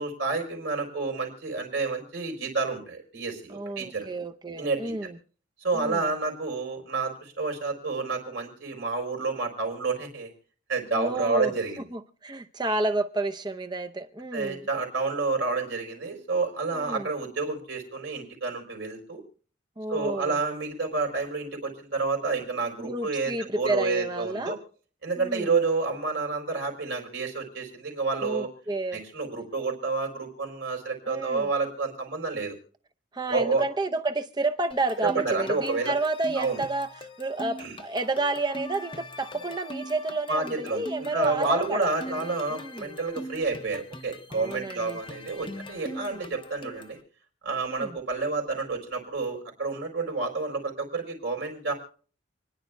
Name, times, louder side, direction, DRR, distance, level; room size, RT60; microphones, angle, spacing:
voice 1, 0.0-4.1 4.6-4.9 5.6-10.3 10.7-11.9 14.3-19.2 19.9-24.6 25.0-28.5 28.9-32.5 33.3-33.6 35.0-35.9 36.4-36.6 37.6-37.8 40.3-47.0 47.4-51.7, right 3 dB, 70° right, 4.2 m, -29 dB
voice 2, 3.5-5.2 5.7-6.1 10.9-11.5 11.9-14.7 16.7-17.1 19.8-20.4 22.8-24.6 25.2-25.6 28.2-29.0 31.1-31.5 33.1-41.9 42.2-42.9 44.3-45.0 45.9-46.3 47.7-48.0, right 2 dB, 20° right, 0.6 m, -31 dB
sound 1, 34.7-47.0, equal, 25° left, 0.7 m, -42 dB
29.0 x 10.5 x 2.3 m
head